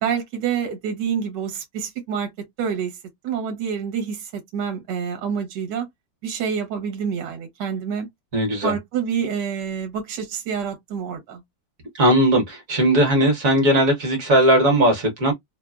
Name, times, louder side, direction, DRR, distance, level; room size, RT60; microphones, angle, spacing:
voice 1, 0.0-2.3 2.6-3.0 3.2-5.9 6.2-8.1 8.6-11.4, right 7 dB, 70° right, 1.4 m, -27 dB
voice 2, 8.3-8.7 11.9-15.3, right 1 dB, 50° right, 1.3 m, -18 dB
3.2 x 2.1 x 2.3 m
omnidirectional pair, 2.0 m